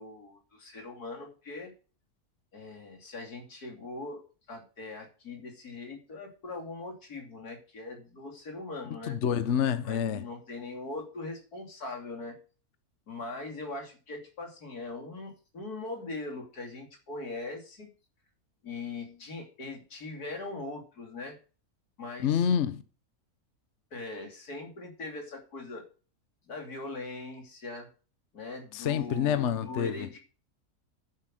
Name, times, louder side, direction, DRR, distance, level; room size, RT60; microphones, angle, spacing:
voice 1, 0.0-1.7 2.5-9.2 9.8-12.4 13.1-17.9 18.6-21.4 22.0-22.4 23.9-25.8 26.4-27.9 28.3-30.2, left 3 dB, 85° left, 3.5 m, -41 dB
voice 2, 9.1-10.2 22.2-22.8 28.7-30.1, left 8 dB, 55° left, 1.0 m, -27 dB
9.8 x 8.0 x 6.2 m
omnidirectional pair, 1.6 m